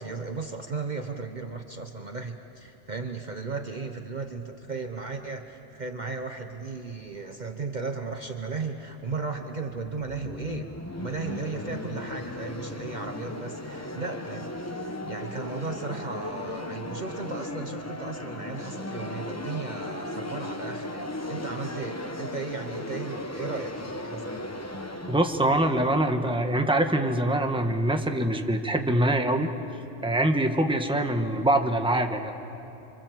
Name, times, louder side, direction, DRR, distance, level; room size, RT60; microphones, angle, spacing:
voice 1, 0.0-10.7 11.0-14.5 14.8-24.4, right 4 dB, 40° right, 5 dB, 1.1 m, -35 dB
sound 1, 9.1-26.9, left 1 dB, 15° left, 1.0 m, -37 dB
voice 2, 25.1-29.5 30.0-32.3, right 1 dB, 5° right, 4 dB, 1.3 m, -24 dB
30.0 x 25.5 x 7.6 m, 2.8 s
omnidirectional pair, 1.2 m